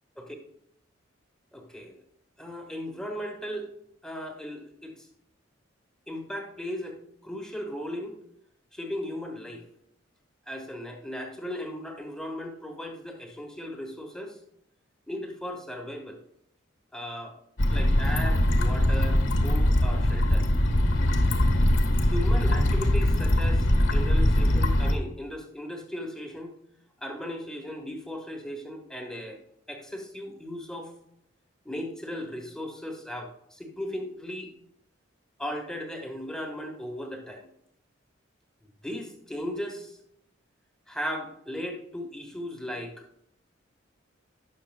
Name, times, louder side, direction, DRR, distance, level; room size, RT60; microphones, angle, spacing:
voice 1, 1.5-2.0 2.4-3.7 4.0-4.9 6.1-8.2 8.7-9.6 10.5-14.4 15.1-16.2 16.9-17.4 17.7-20.5 22.1-26.5 27.0-29.4 29.7-30.9 31.6-34.5 35.4-37.5 38.8-40.0 40.9-43.0, equal, 5° left, 2 dB, 1.3 m, -37 dB
sound 1, 17.6-24.9, left 1 dB, 75° left, 1.4 m, -22 dB
17.0 x 6.5 x 2.3 m, 0.76 s
head